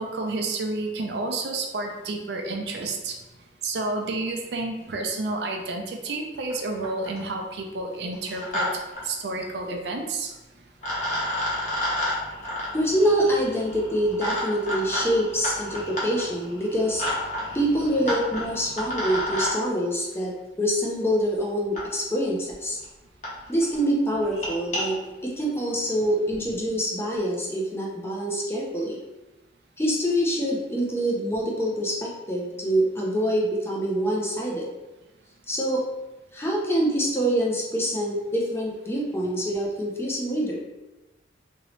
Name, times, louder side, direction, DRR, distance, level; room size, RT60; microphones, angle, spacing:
voice 1, 0.0-3.1 3.6-8.7 9.0-10.3, right 2 dB, 75° right, 3 dB, 0.5 m, -30 dB
sound 1, 6.5-6.6 6.8-7.3 8.1-8.7 8.9-9.0 10.3-10.4 10.8-19.5 20.8-20.9 21.7-21.8 22.5-22.6 22.8-22.9 23.2-23.3 23.6-23.8 24.2-24.8, left 1 dB, 45° left, 1.0 m, -30 dB
voice 2, 12.7-17.1 17.5-20.3 20.6-22.8 23.5-29.0 29.8-34.7 35.5-35.8 36.3-40.6, equal, 15° left, -3 dB, 0.5 m, -25 dB
2.9 x 2.7 x 3.1 m, 1.0 s
head